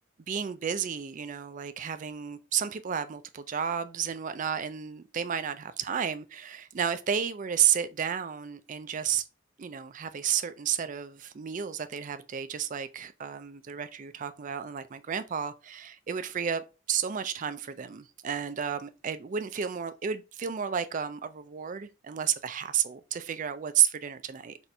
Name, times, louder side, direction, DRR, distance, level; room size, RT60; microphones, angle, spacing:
voice 1, 0.3-9.2 9.6-16.6 16.9-24.6, right 8 dB, 40° right, 0.4 m, -31 dB
4.1 x 2.5 x 4.4 m
head